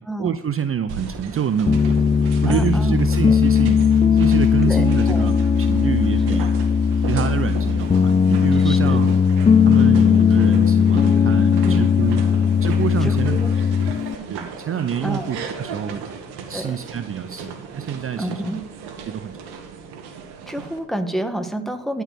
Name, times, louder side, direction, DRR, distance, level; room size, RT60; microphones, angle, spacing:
voice 1, 0.0-2.0 2.4-3.8 4.1-6.6 7.0-9.2 9.7-12.2 12.6-13.4 14.3-16.0 16.5-18.5 19.0-19.3, right 8 dB, 35° right, 12 dB, 0.6 m, -26 dB
sound 1, 0.9-20.8, right 5 dB, 75° right, 1.7 m, -36 dB
Piano, 1.7-14.1, left 6 dB, 15° left, 0.4 m, -17 dB
voice 2, 2.4-3.0 3.3-3.4 4.6-5.5 6.3-6.4 8.6-9.0 11.7-11.8 13.0-13.5 15.0-15.3 16.5-16.8 18.2-18.6 20.5-22.0, right 1 dB, ahead, 7 dB, 1.7 m, -29 dB
13.0 x 4.7 x 8.1 m, 0.88 s
hypercardioid pair, 50°, 39 cm